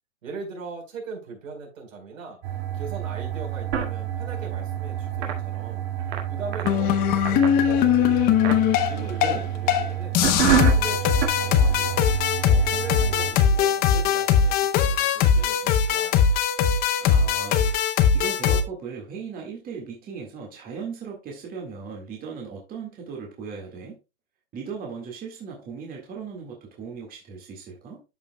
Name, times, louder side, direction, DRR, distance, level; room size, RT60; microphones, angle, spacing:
voice 1, 0.2-2.4 2.7-5.8 6.3-8.3 8.8-10.2 10.5-12.0 12.4-16.4, right 4 dB, 75° right, 4.3 m, -40 dB
sound 1, 2.4-13.3, right 10 dB, 50° right, 2.3 m, -28 dB
sound 2, 6.6-9.4 9.7-9.9 10.1-18.6, left 8 dB, 25° left, 0.6 m, -21 dB
voice 2, 9.0-9.5 17.0-17.8 18.1-24.0 24.5-28.0, right 5 dB, 20° right, 1.8 m, -37 dB
13.0 x 5.3 x 2.2 m
hypercardioid pair, 135°, 40 cm